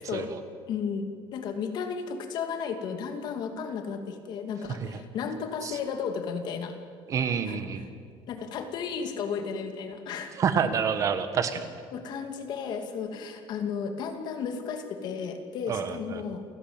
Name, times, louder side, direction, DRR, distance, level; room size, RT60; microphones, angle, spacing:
voice 1, 0.7-1.1 1.3-6.7 7.5-7.6 8.3-10.3 11.9-16.4, left 6 dB, 45° left, 7 dB, 2.5 m, -33 dB
voice 2, 4.7-5.0 5.6-5.8 7.1-7.8 10.3-11.6 15.7-16.2, right 7 dB, 30° right, 10 dB, 1.3 m, -28 dB
28.5 x 17.0 x 8.8 m, 2.2 s
cardioid pair, 180°, 10 cm